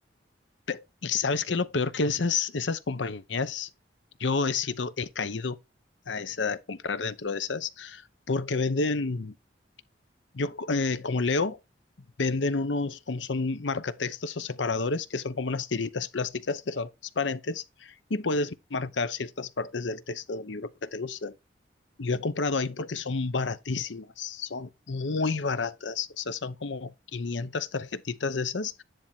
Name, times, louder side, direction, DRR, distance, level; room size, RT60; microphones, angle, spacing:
voice 1, 0.7-3.7 4.2-5.6 6.1-8.0 8.3-9.3 10.3-11.6 12.2-16.9 17.2-21.3 22.0-28.8, left 4 dB, 85° left, 0.8 m, -30 dB
10.5 x 3.5 x 4.4 m
head